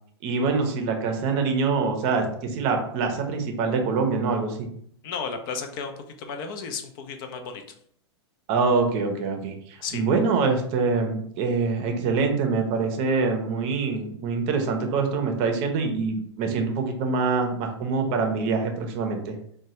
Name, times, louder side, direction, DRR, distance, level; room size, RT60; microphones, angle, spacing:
voice 1, 0.2-4.7 8.5-19.3, right 4 dB, 45° right, 4 dB, 0.6 m, -25 dB
voice 2, 5.0-5.9 6.2-7.6 9.8-10.0, left 5 dB, 50° left, 5 dB, 0.5 m, -33 dB
3.0 x 2.2 x 2.8 m, 0.66 s
hypercardioid pair, 105°, 15 cm